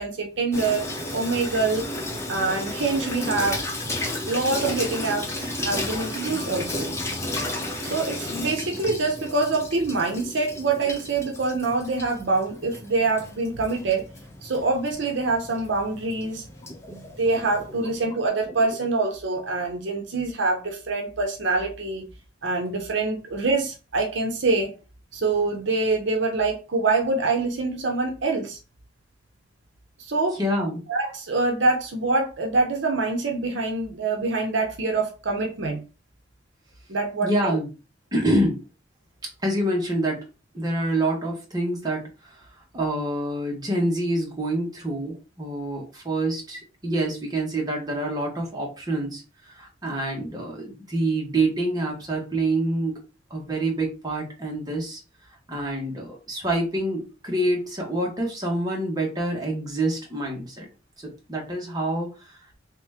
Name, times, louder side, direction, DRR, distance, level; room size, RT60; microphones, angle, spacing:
voice 1, 0.0-1.9 2.3-3.6 4.3-6.9 7.8-14.0 14.4-16.4 16.9-22.1 22.4-24.7 25.1-28.6 30.0-30.6 30.9-35.8 36.9-37.6, right 3 dB, 65° right, 0.7 m, -25 dB
Water tap faucet / Sink (filling or washing), 0.5-18.0, left 1 dB, 15° left, 0.7 m, -33 dB
sound 1, 16.6-18.9, left 1 dB, 30° left, 1.0 m, -42 dB
voice 2, 30.4-30.8 37.2-37.7 38.1-38.6 39.4-40.2 40.5-42.4 42.7-53.0 53.3-55.0 55.5-60.7 61.0-62.5, right 1 dB, 20° right, 1.2 m, -27 dB
3.1 x 3.0 x 3.5 m
head